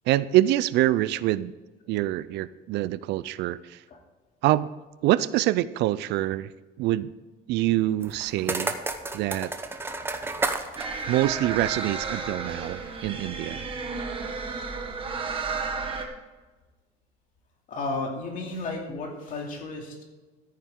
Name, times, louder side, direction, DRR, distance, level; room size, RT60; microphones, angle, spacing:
voice 1, 0.1-1.5 1.9-3.8 4.4-4.7 5.0-6.5 6.8-7.1 7.5-8.7 9.1-9.5 11.1-13.6, right 15 dB, 65° right, 17 dB, 0.4 m, -25 dB
sound 1, 8.0-12.2, right 3 dB, 10° right, 0.8 m, -32 dB
sound 2, 10.8-16.0, right 4 dB, 30° right, 1.5 m, -32 dB
voice 2, 17.7-20.0, left 3 dB, 45° left, 0 dB, 2.7 m, -33 dB
13.5 x 9.5 x 3.7 m, 1.2 s
cardioid pair, 145°, 19 cm